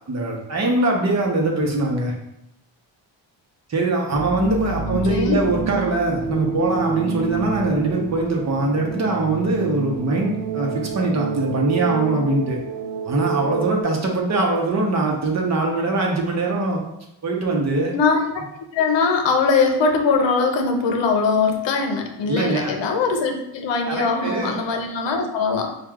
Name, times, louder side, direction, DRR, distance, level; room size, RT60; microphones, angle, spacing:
voice 1, 0.1-2.1 3.7-12.6 13.0-16.8 17.2-17.9 22.3-22.7 23.9-24.5, right 2 dB, 40° right, 0 dB, 0.8 m, -22 dB
sound 1, 4.1-13.8, right 5 dB, 70° right, 0.6 m, -29 dB
voice 2, 4.8-5.4 17.9-18.4 18.7-25.7, left 4 dB, 85° left, 4 dB, 0.7 m, -21 dB
6.2 x 2.4 x 2.3 m, 0.83 s
cardioid pair, 130°, 42 cm